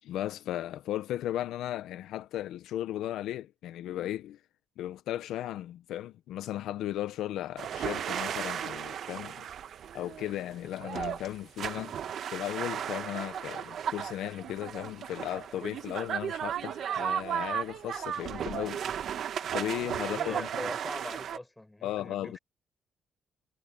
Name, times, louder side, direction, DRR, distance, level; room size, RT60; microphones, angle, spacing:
voice 1, 0.0-4.4 4.8-9.5 9.9-12.0 12.3-18.9 19.5-20.7 21.8-22.4, left 13 dB, 85° left, 0.7 m, -36 dB
sound 1, 7.6-21.4, right 9 dB, 65° right, 1.2 m, -35 dB
voice 2, 20.0-22.4, left 1 dB, 10° left, 7.1 m, -42 dB
cardioid pair, 90°, 0 cm